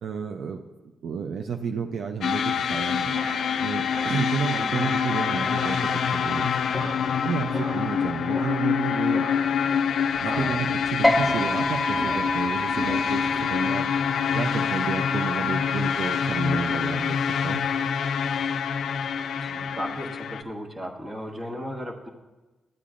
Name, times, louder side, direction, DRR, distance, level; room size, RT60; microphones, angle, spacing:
voice 1, 0.0-3.2 3.6-6.9 7.2-9.3 10.2-13.9 14.3-17.6, right 6 dB, 80° right, 5 dB, 0.4 m, -31 dB
sound 1, 2.2-20.4, left 7 dB, 75° left, 0.3 m, -26 dB
sound 2, 2.9-13.8, right 1 dB, 55° right, 1.3 m, -39 dB
voice 2, 10.2-10.6 19.4-22.1, equal, 30° right, 2 dB, 1.3 m, -35 dB
sound 3, 11.0-17.8, left 1 dB, 5° right, 1.2 m, -30 dB
13.0 x 8.4 x 2.5 m, 1.2 s
cardioid pair, 80°, 0 cm